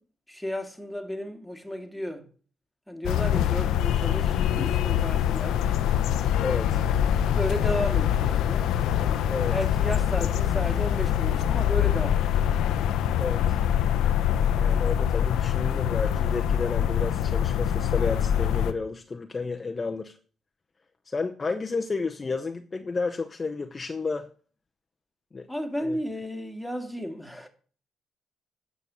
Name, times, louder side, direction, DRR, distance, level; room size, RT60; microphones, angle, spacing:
voice 1, 0.3-2.3 2.9-5.6 7.2-8.7 9.5-12.3 25.5-27.5, equal, ahead, 2.0 m, -33 dB
sound 1, 3.0-18.7, left 10 dB, 85° left, 0.7 m, -24 dB
voice 2, 6.3-6.8 9.3-9.5 10.1-10.3 13.2-13.6 14.5-20.2 21.1-24.3 25.3-25.5 25.8-26.0, left 4 dB, 30° left, 0.8 m, -31 dB
9.1 x 6.3 x 6.8 m
cardioid pair, 90°, 0 cm